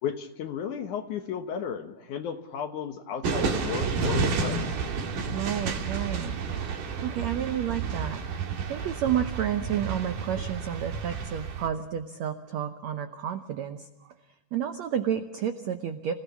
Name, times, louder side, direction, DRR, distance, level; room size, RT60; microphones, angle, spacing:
voice 1, 0.0-4.7, left 7 dB, 65° left, 7 dB, 2.2 m, -34 dB
sound 1, 3.2-11.7, right 5 dB, 60° right, 3.3 m, -31 dB
voice 2, 5.3-6.4 7.0-8.2 8.7-14.1 14.5-16.1, right 9 dB, 85° right, 8 dB, 1.5 m, -31 dB
27.5 x 17.0 x 7.2 m, 1.0 s
omnidirectional pair, 4.5 m